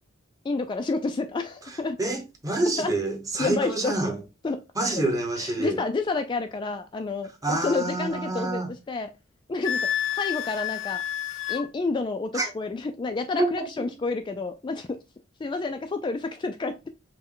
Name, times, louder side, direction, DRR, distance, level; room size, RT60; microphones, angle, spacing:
voice 1, 0.4-2.0 2.8-2.9 3.4-3.9 4.4-5.0 5.4-9.1 9.5-9.8 10.1-11.0 11.5-15.0 15.4-16.9, left 3 dB, 25° left, 0.3 m, -29 dB
voice 2, 2.0-4.2 4.8-5.8 7.4-8.7 12.3-12.5 13.4-13.7, right 2 dB, 15° right, 0.9 m, -27 dB
Wind instrument woodwind instrument, 9.6-11.6, left 11 dB, 90° left, 0.7 m, -29 dB
5.2 x 2.1 x 3.7 m
head